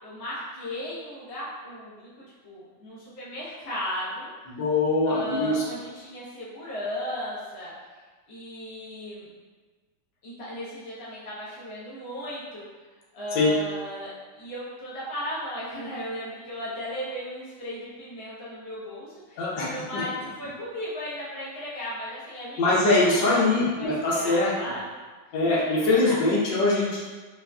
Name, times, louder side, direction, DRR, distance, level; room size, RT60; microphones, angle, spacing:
voice 1, 0.0-4.6 5.0-7.7 8.3-9.3 10.2-12.6 13.1-22.6 23.1-24.8 25.4-26.2 26.7-27.0, left 1 dB, 45° left, -8 dB, 1.0 m, -36 dB
voice 2, 4.5-5.6 13.3-13.5 19.4-20.0 22.6-24.5 25.3-27.0, left 2 dB, 85° left, -5 dB, 1.4 m, -23 dB
3.9 x 2.4 x 2.2 m, 1.4 s
omnidirectional pair, 1.9 m